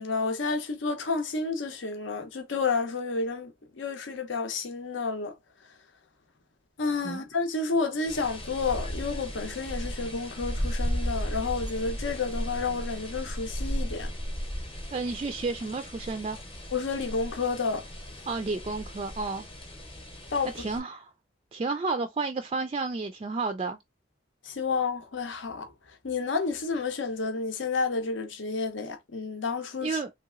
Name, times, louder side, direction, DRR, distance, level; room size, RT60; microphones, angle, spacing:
voice 1, 0.0-5.3 6.8-14.1 16.7-17.8 20.3-20.5 24.5-25.7 26.0-30.0, left 4 dB, 75° left, 0.7 m, -30 dB
sound 1, 8.1-20.8, equal, 30° left, 0.8 m, -35 dB
voice 2, 14.9-16.4 18.3-19.5 20.4-21.1 21.5-23.8 29.8-30.1, right 3 dB, 30° right, 0.3 m, -31 dB
3.3 x 2.8 x 2.4 m
head